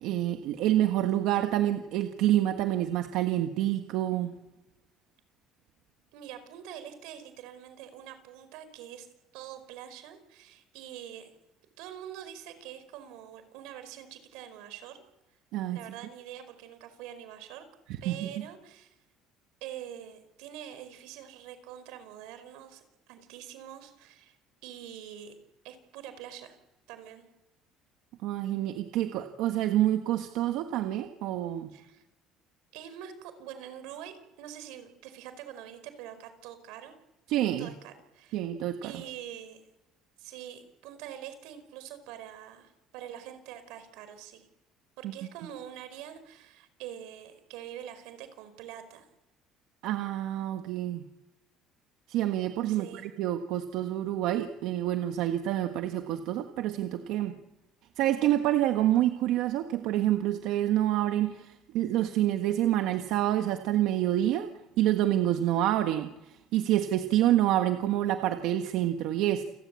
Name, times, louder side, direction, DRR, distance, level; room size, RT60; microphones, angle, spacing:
voice 1, 0.0-4.3 15.5-15.8 18.0-18.3 28.2-31.7 37.3-37.7 38.3-38.9 49.8-51.0 52.1-57.4 58.0-64.5 64.8-66.1 66.5-69.4, right 13 dB, 65° right, 6 dB, 1.5 m, -27 dB
voice 2, 6.1-9.1 9.3-11.3 11.8-15.0 15.7-17.6 18.0-18.9 19.6-24.4 24.6-25.3 25.6-26.6 26.9-27.3 31.7-32.0 32.7-36.9 37.6-38.4 38.8-39.6 40.2-44.5 45.0-49.1 52.7-53.1, right 10 dB, 90° right, 11 dB, 4.9 m, -45 dB
29.0 x 18.5 x 8.4 m, 0.99 s
cardioid pair, 175°, 0 cm